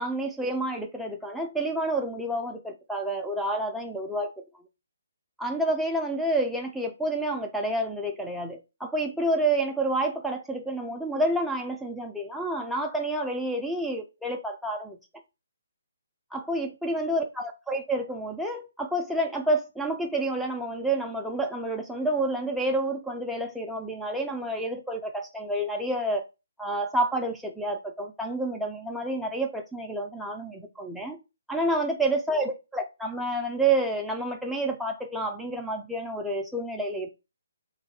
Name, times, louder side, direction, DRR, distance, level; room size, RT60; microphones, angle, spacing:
voice 1, 0.0-4.4 5.4-15.0 16.3-26.2 26.6-31.2 31.5-37.1, right 1 dB, ahead, 0.4 m, -29 dB
3.1 x 2.3 x 4.2 m
hypercardioid pair, 160°, 0 cm